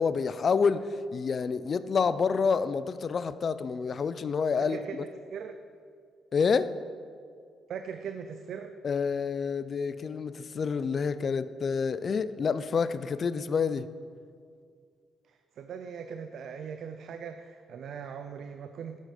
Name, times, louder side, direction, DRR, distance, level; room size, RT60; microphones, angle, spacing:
voice 1, 0.0-5.0 6.3-6.7 8.8-13.9, left 5 dB, 45° left, 0.4 m, -28 dB
voice 2, 4.6-5.5 7.7-8.7 15.3-19.0, right 7 dB, 70° right, 0.4 m, -40 dB
7.6 x 7.5 x 5.0 m
cardioid pair, 90°, 0 cm